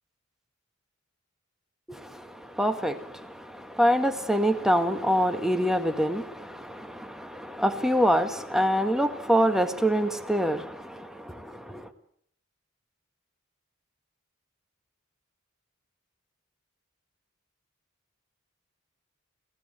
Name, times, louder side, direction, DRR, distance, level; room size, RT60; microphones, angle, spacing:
voice 1, 1.9-11.9, equal, ahead, 1.8 m, -26 dB
29.5 x 16.5 x 9.2 m
head